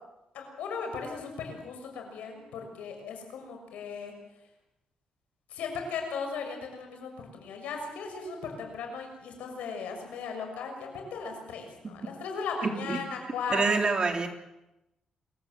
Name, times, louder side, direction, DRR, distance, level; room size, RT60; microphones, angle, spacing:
voice 1, 0.3-4.1 5.5-13.8, left 5 dB, 90° left, 4 dB, 6.5 m, -37 dB
voice 2, 12.6-13.0 13.5-14.3, right 4 dB, 40° right, 4 dB, 3.6 m, -27 dB
27.5 x 15.5 x 7.8 m, 0.92 s
cardioid pair, 85°, 2 cm